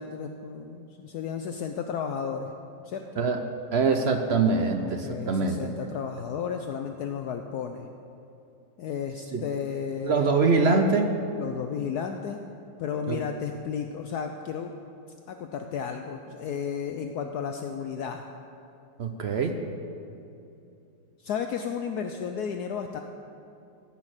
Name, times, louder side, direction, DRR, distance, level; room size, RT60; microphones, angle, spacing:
voice 1, 0.0-2.5 2.9-3.2 4.8-7.9 8.8-10.5 11.3-12.4 12.8-14.7 15.3-18.2 21.2-23.0, left 7 dB, 70° left, 5 dB, 1.1 m, -33 dB
voice 2, 3.7-5.6 9.3-9.4 10.0-11.2 13.1-13.2 19.0-19.6, right 4 dB, 65° right, 5 dB, 0.6 m, -23 dB
15.0 x 6.3 x 8.9 m, 2.7 s
omnidirectional pair, 1.9 m